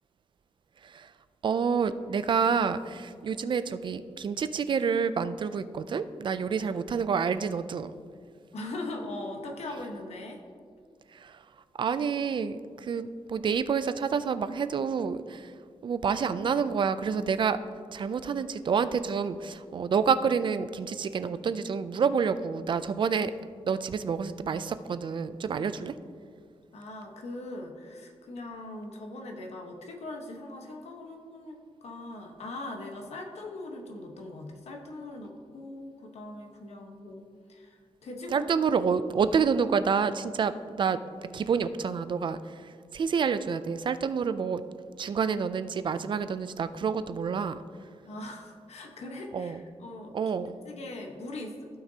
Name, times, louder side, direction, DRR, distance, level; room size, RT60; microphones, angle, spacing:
voice 1, 1.4-7.9 11.1-11.4 11.8-15.5 15.8-17.6 17.9-23.3 23.7-25.9 38.3-44.6 45.0-47.6 49.3-49.6 50.1-50.6, right 6 dB, 45° right, 12 dB, 0.4 m, -28 dB
voice 2, 8.5-10.4 26.7-38.5 48.0-50.1 50.6-51.7, left 2 dB, 75° left, 2 dB, 1.2 m, -40 dB
15.5 x 5.9 x 2.8 m, 2.1 s
wide cardioid pair, 160°, 11 cm